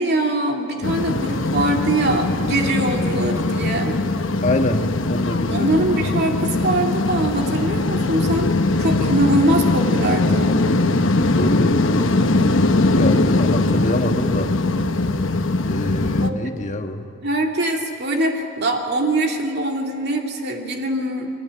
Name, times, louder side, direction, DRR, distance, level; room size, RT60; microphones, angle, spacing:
voice 1, 0.0-4.0 5.5-8.5 8.8-10.5 16.0-16.4 17.2-21.3, right 1 dB, 55° right, 2 dB, 2.7 m, -22 dB
sound 1, 0.8-16.3, left 2 dB, 75° left, 1.1 m, -20 dB
voice 2, 4.4-5.7 11.3-12.1 12.9-14.5 15.6-17.0, left 1 dB, 40° left, 5 dB, 1.4 m, -25 dB
22.5 x 18.0 x 9.6 m, 2.8 s
head